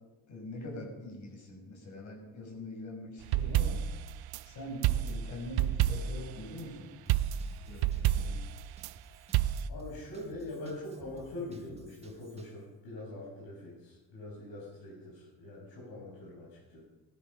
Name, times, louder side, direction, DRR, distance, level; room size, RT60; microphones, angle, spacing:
voice 1, 0.3-3.8 4.4-6.9 7.6-8.4, left 1 dB, 50° left, 1 dB, 5.6 m, -43 dB
sound 1, 3.2-4.4 4.8-6.3 7.1-8.9 9.3-9.7, right 11 dB, 85° right, 0.7 m, -29 dB
Drum kit / Drum, 7.1-12.6, right 3 dB, 15° right, 1.5 m, -57 dB
voice 2, 9.7-16.8, left 1 dB, 90° left, -6 dB, 6.6 m, -43 dB
18.5 x 12.5 x 5.5 m, 1.1 s
cardioid pair, 170°, 36 cm